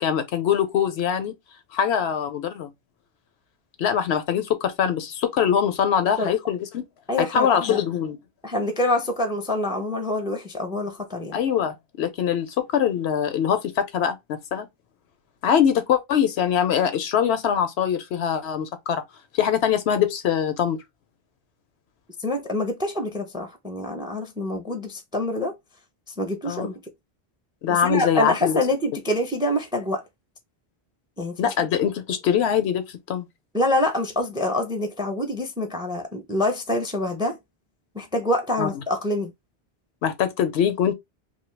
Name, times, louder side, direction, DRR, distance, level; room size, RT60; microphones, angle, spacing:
voice 1, 0.0-1.3 1.7-2.7 3.8-6.8 7.2-8.2 11.3-14.7 15.4-19.0 19.3-20.8 26.5-26.7 27.6-28.6 31.4-33.3 38.6-38.7 40.0-40.9, left 8 dB, 90° left, 0.9 m, -23 dB
voice 2, 7.1-7.8 8.4-11.4 22.2-25.5 26.2-26.8 27.7-30.0 31.2-31.5 33.5-37.4 37.9-39.3, left 1 dB, 5° right, 0.4 m, -26 dB
2.7 x 2.3 x 3.1 m
omnidirectional pair, 1.1 m